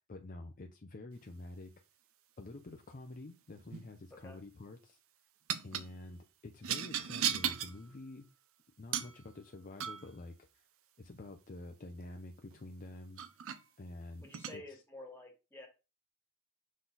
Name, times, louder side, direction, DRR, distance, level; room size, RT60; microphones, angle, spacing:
voice 1, 0.0-1.7 2.4-5.0 5.6-8.2 8.8-10.7 11.0-13.2 13.8-14.8, left 2 dB, 35° left, 4 dB, 0.6 m, -48 dB
sound 1, 3.5-3.9 5.5-5.9 6.6-7.8 8.9-9.2 9.8-10.1 12.5-12.6 13.2-13.6 14.3-14.6, right 9 dB, 65° right, 0.6 m, -36 dB
voice 2, 14.2-15.7, left 1 dB, 10° left, 2 dB, 1.7 m, -50 dB
6.2 x 3.9 x 4.0 m, 0.28 s
head